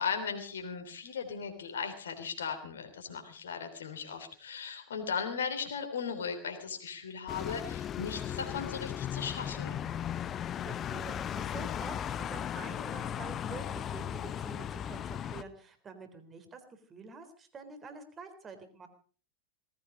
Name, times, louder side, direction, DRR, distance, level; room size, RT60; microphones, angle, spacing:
voice 1, 0.0-9.8, left 6 dB, 65° left, 5 dB, 3.3 m, -37 dB
sound 1, 7.3-15.4, left 9 dB, 25° left, 0.8 m, -37 dB
voice 2, 10.6-18.9, right 4 dB, 20° right, 8 dB, 3.7 m, -47 dB
19.0 x 15.5 x 5.0 m, 0.41 s
figure-of-eight pair, 90°, 0 cm